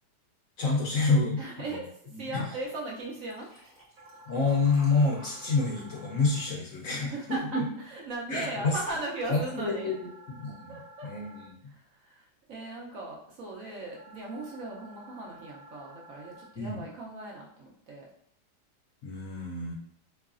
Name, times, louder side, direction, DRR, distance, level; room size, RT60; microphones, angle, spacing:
voice 1, 0.6-1.4 2.3-2.4 4.3-7.6 8.3-8.8 9.3-10.1 10.3-10.8 11.0-11.7 16.6-16.8 19.0-19.7, left 3 dB, 60° left, -3 dB, 0.9 m, -28 dB
voice 2, 1.4-3.5 6.8-9.9 10.7-11.1 11.7-18.1, right 2 dB, 65° right, -3 dB, 0.9 m, -38 dB
Liquid, 3.1-7.8 8.3-8.5 8.8-8.9, equal, 10° right, 0.9 m, -54 dB
sound 1, 4.0-6.5 9.0-11.5 14.0-16.5, right 1 dB, 35° right, 0.6 m, -52 dB
3.7 x 3.1 x 2.4 m, 0.70 s
omnidirectional pair, 1.8 m